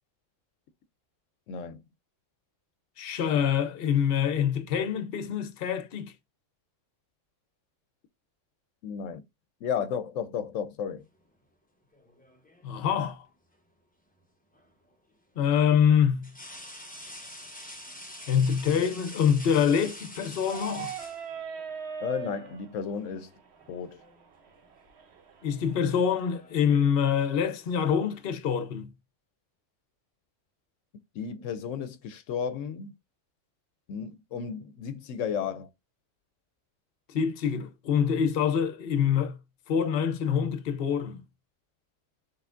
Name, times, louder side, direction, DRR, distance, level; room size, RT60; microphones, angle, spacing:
voice 1, 1.5-1.8 8.8-9.2 9.6-11.0 22.0-23.3 23.7-24.0 31.1-32.9 33.9-35.7, left 7 dB, 85° left, 0.9 m, -33 dB
voice 2, 3.0-6.1 12.6-13.2 15.4-16.3 18.3-20.9 25.4-28.9 37.1-39.4 39.7-41.2, left 8 dB, 55° left, 0.9 m, -25 dB
sound 1, 11.9-12.8 14.5-14.7 16.2-21.7 22.9-23.1 23.5-24.2 24.5-24.9 25.7-28.4, left 1 dB, 10° left, 0.8 m, -46 dB
sound 2, 20.4-26.0, right 7 dB, 60° right, 1.1 m, -41 dB
5.6 x 3.6 x 2.5 m
omnidirectional pair, 1.3 m